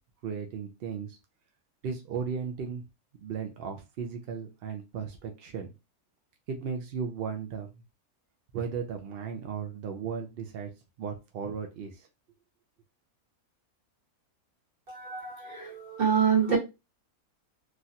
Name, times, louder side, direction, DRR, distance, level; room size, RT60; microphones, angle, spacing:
voice 1, 0.2-1.2 1.8-2.8 3.2-5.7 6.5-7.7 8.5-10.7 11.0-12.1, right 6 dB, 70° right, 0.5 m, -35 dB
voice 2, 14.9-16.6, right 7 dB, 40° right, 1.3 m, -26 dB
3.1 x 2.4 x 2.7 m
omnidirectional pair, 1.5 m